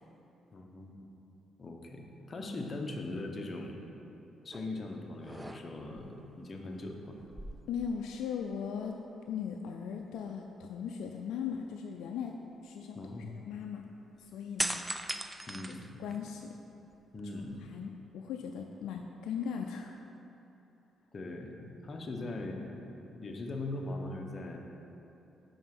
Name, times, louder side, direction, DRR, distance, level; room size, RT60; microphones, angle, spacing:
voice 1, 0.5-0.9 1.6-3.8 4.4-7.3 12.9-13.3 15.5-16.0 17.1-17.6 21.1-22.7 23.0-24.6, left 2 dB, 40° left, 2 dB, 0.8 m, -40 dB
sound 1, 4.5-4.8 5.2-6.0 7.2-8.5 8.8-8.9 14.6-16.4 16.9-17.8, right 1 dB, 10° right, 0.3 m, -39 dB
voice 2, 7.7-9.0 9.3-12.3 12.6-13.0 13.4-13.8 14.2-14.8 16.0-16.6 17.7-20.0, left 7 dB, 85° left, 2 dB, 0.3 m, -38 dB
5.4 x 4.7 x 5.9 m, 3.0 s
cardioid pair, 90°, 0 cm